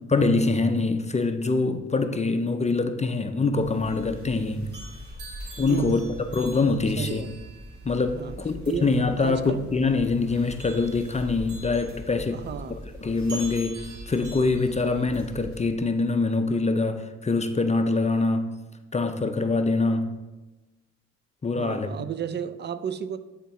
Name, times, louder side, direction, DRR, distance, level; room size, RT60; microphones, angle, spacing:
voice 1, 0.1-4.8 5.6-6.0 6.3-7.3 7.8-12.4 13.0-18.5 18.9-20.2 21.4-22.1, left 3 dB, 25° left, 0.5 m, -24 dB
sound 1, 3.6-15.7, right 1 dB, 85° right, 1.9 m, -41 dB
voice 2, 5.7-6.1 7.0-7.4 8.1-8.3 8.7-9.6 12.3-12.8 21.5-23.2, right 7 dB, 35° right, 0.4 m, -33 dB
9.2 x 4.4 x 3.0 m
cardioid pair, 70°, 29 cm